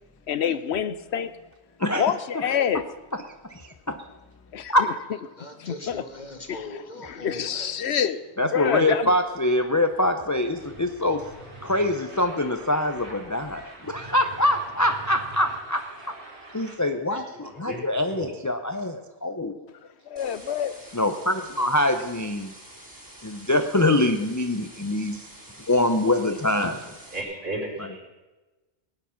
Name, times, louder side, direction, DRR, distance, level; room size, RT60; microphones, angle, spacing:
voice 1, 0.3-1.3 1.9-2.8 4.5-4.7 7.2-8.2 8.5-9.0 20.1-20.8, left 8 dB, 75° left, 13 dB, 1.0 m, -26 dB
voice 2, 1.8-2.8 3.1-3.3 3.9-4.0 4.7-4.9 8.4-11.2 11.6-16.2 16.5-19.5 20.9-22.5 23.2-25.3 25.7-26.9 27.8-27.9, left 1 dB, 20° left, 6 dB, 0.6 m, -24 dB
voice 3, 5.3-8.2, left 2 dB, 40° left, 5 dB, 1.5 m, -40 dB
sound 1, 10.6-16.8, right 2 dB, 80° right, 3.9 m, -44 dB
voice 4, 17.1-17.8 18.2-18.3 27.1-28.0, right 2 dB, 60° right, -3 dB, 4.5 m, -34 dB
sound 2, 20.2-27.2, right 1 dB, 15° right, 2.4 m, -47 dB
18.0 x 9.8 x 5.9 m, 1.2 s
omnidirectional pair, 1.1 m